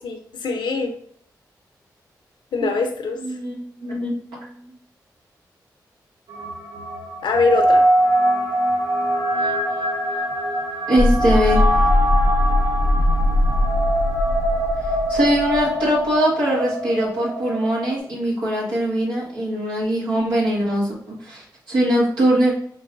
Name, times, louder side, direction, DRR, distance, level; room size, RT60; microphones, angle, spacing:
voice 1, 0.0-0.9 2.5-3.2 7.2-7.8, left 4 dB, 80° left, 4 dB, 0.7 m, -22 dB
voice 2, 3.2-4.7 10.9-11.6 15.1-22.5, right 1 dB, 90° right, -6 dB, 1.7 m, -22 dB
sound 1, 6.3-18.0, right 1 dB, 65° right, 0.9 m, -23 dB
sound 2, 11.0-15.8, left 1 dB, 35° left, 0.6 m, -20 dB
5.5 x 2.6 x 2.6 m, 0.65 s
supercardioid pair, 45°, 8 cm